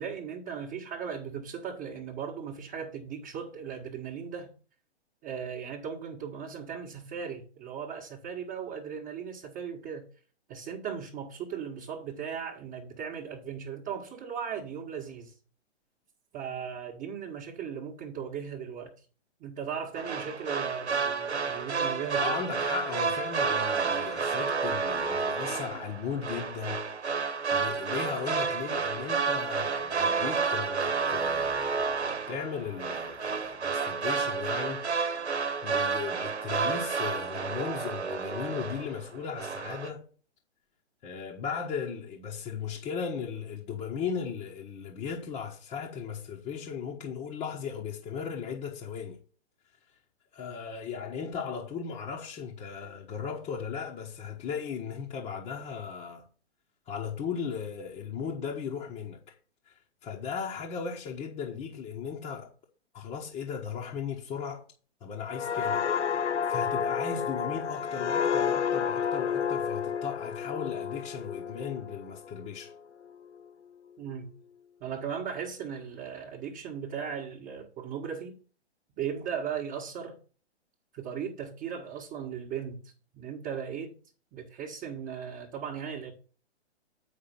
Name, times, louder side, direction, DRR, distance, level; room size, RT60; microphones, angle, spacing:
voice 1, 0.0-4.5 5.2-10.1 10.5-15.3 16.3-19.0 19.4-22.6 74.0-74.3 74.8-78.3 79.0-80.1 80.9-83.9 84.3-86.1, right 7 dB, 20° right, 1.3 m, -37 dB
sound 1, 20.0-39.1 39.4-39.9, right 5 dB, 75° right, 1.2 m, -30 dB
voice 2, 22.1-26.8 27.5-35.2 35.6-40.1 41.0-49.2 50.3-56.2 56.9-59.4 59.6-62.5 62.9-64.6 65.0-72.7, left 6 dB, 15° left, 1.0 m, -37 dB
sound 2, 65.3-72.7 73.1-73.4, left 7 dB, 80° left, 0.5 m, -30 dB
8.5 x 4.9 x 5.6 m
figure-of-eight pair, 120°, 34 cm